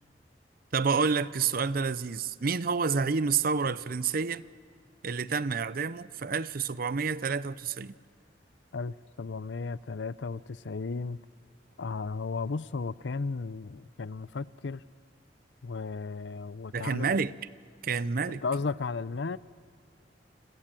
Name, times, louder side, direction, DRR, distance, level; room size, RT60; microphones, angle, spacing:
voice 1, 0.7-4.4 5.0-7.9 16.7-17.4 17.8-18.4, right 5 dB, 55° right, 0.6 m, -29 dB
voice 2, 8.7-11.2 11.8-14.8 15.6-17.1 18.3-19.4, left 4 dB, 80° left, 0.6 m, -34 dB
28.0 x 26.5 x 7.6 m
head